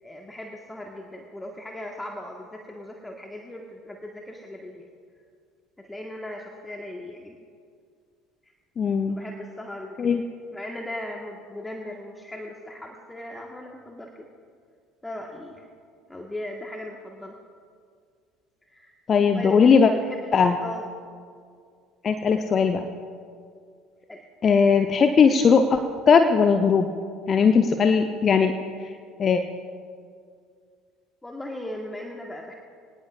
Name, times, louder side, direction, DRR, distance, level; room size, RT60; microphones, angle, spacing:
voice 1, 0.0-4.9 5.8-7.4 8.4-8.5 9.1-10.2 10.5-14.3 15.0-15.7 16.1-17.4 18.6-19.0 19.3-20.3 20.6-20.9 24.1-24.2 31.2-32.5, left 1 dB, 10° left, 1 dB, 1.5 m, -38 dB
voice 2, 8.8-9.2 10.0-10.2 19.1-19.9 20.3-20.6 22.0-22.8 24.4-25.8 26.1-26.9 27.3-28.5 29.2-29.4, left 6 dB, 35° left, 7 dB, 0.8 m, -19 dB
24.5 x 18.5 x 2.5 m, 2.2 s
figure-of-eight pair, 60°, 0 cm